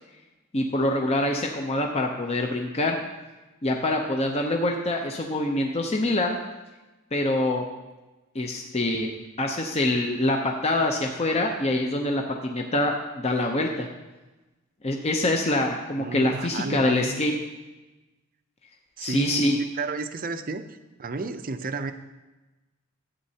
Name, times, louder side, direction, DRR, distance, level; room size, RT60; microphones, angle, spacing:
voice 1, 0.5-3.0 3.6-6.4 7.1-7.6 8.3-9.1 9.4-13.9 14.8-17.3 19.0-19.6, left 1 dB, 30° left, 2 dB, 0.6 m, -25 dB
voice 2, 16.0-17.2 19.0-19.4 19.8-20.6 21.0-21.9, right 4 dB, 40° right, 9 dB, 0.5 m, -31 dB
12.5 x 8.7 x 2.8 m, 1.1 s
head